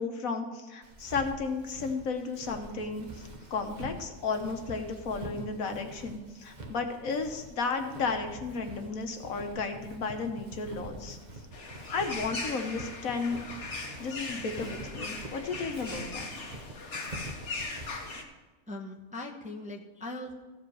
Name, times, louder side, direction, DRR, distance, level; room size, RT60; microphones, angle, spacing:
voice 1, 0.0-11.2 11.9-13.4 14.0-16.3, left 4 dB, 75° left, 5 dB, 1.4 m, -33 dB
Walk footsteps, 0.8-18.2, right 1 dB, 35° right, 0.9 m, -45 dB
sound 1, 11.5-18.2, left 3 dB, 55° left, 1.6 m, -39 dB
voice 2, 18.7-20.3, left 2 dB, 5° right, 0 dB, 0.7 m, -40 dB
15.0 x 5.0 x 6.2 m, 1.3 s
omnidirectional pair, 1.5 m